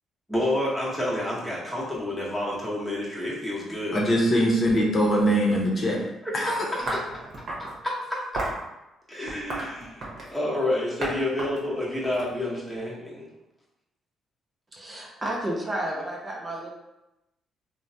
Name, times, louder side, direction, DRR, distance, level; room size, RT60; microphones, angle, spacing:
voice 1, 0.3-4.0 5.2-5.3 9.2-9.7 10.3-12.9, left 1 dB, 5° left, -6 dB, 1.0 m, -28 dB
voice 2, 3.9-6.0 6.3-6.7, equal, 45° left, -2 dB, 0.7 m, -22 dB
sound 1, 6.9-7.8 8.3-8.6 9.3-10.4 11.0-11.1 11.4-12.8, right 2 dB, 55° right, 0.9 m, -32 dB
voice 3, 14.7-16.7, right 1 dB, 25° right, -2 dB, 0.5 m, -31 dB
3.1 x 2.1 x 2.6 m, 0.94 s
cardioid pair, 90°, 0 cm